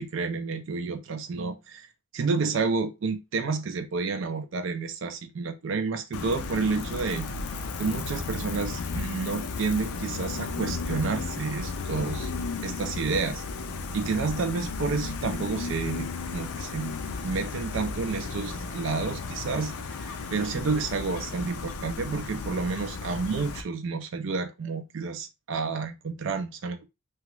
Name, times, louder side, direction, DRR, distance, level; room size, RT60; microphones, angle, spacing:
voice 1, 0.0-1.9 2.1-7.3 7.8-12.3 12.6-13.4 13.9-17.0 17.2-26.9, right 4 dB, 55° right, 0.4 m, -30 dB
Gull seagull, 6.1-23.6, left 4 dB, 85° left, 0.5 m, -34 dB
2.9 x 2.4 x 3.0 m
head